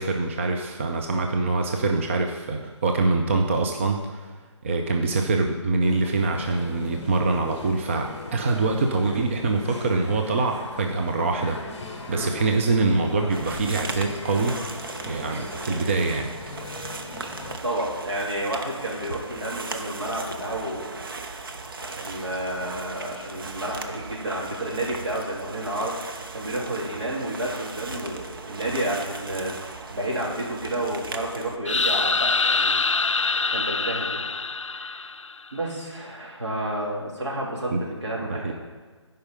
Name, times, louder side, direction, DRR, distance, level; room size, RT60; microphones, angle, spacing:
voice 1, 0.0-4.3 4.6-11.8 12.1-14.6 15.1-16.3 37.7-37.8 38.3-38.5, right 3 dB, 25° right, 3 dB, 0.5 m, -24 dB
sound 1, 5.8-17.6, left 3 dB, 20° left, 1.4 m, -39 dB
sound 2, 13.3-31.6, right 3 dB, 50° right, 0.8 m, -37 dB
voice 2, 17.6-20.9 21.8-32.8 33.5-34.2 34.7-35.1 35.5-37.7 38.0-38.5, right 1 dB, 65° right, -4 dB, 3.2 m, -30 dB
sound 3, 31.7-35.5, left 4 dB, 80° left, 0.4 m, -24 dB
13.0 x 5.4 x 5.5 m, 1.5 s
figure-of-eight pair, 145°, 16 cm